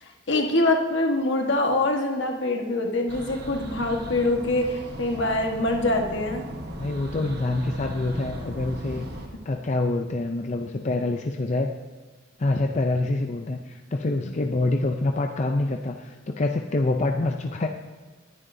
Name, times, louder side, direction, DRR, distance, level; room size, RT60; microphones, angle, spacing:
voice 1, 0.0-6.4 9.3-9.4 14.2-14.3, left 2 dB, 65° left, 2 dB, 1.4 m, -24 dB
sound 1, 3.1-9.3, right 1 dB, 55° right, 1.2 m, -37 dB
voice 2, 6.8-9.1 9.4-11.7 12.4-17.7, left 2 dB, 35° left, 3 dB, 0.5 m, -26 dB
19.0 x 10.0 x 2.7 m, 1.3 s
head